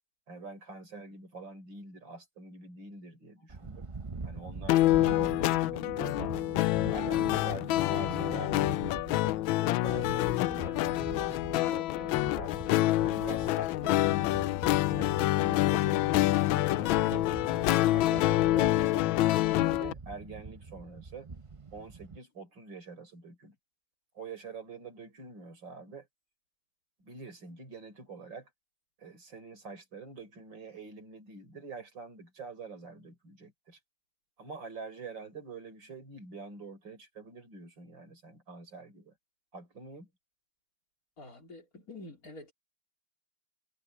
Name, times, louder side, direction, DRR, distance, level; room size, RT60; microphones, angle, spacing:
voice 1, 0.3-3.9 4.2-6.3 6.8-8.8 9.2-12.6 13.0-17.3 17.8-21.3 21.7-23.6 24.2-26.1 27.0-28.5 29.0-33.8 34.4-39.1 39.5-40.1, right 4 dB, 70° right, 5.5 m, -46 dB
sound 1, 3.5-22.2, right 4 dB, 35° right, 0.5 m, -43 dB
sound 2, 4.7-19.9, left 16 dB, 85° left, 1.3 m, -27 dB
voice 2, 41.2-42.5, left 2 dB, 45° left, 4.3 m, -47 dB
omnidirectional pair, 2.1 m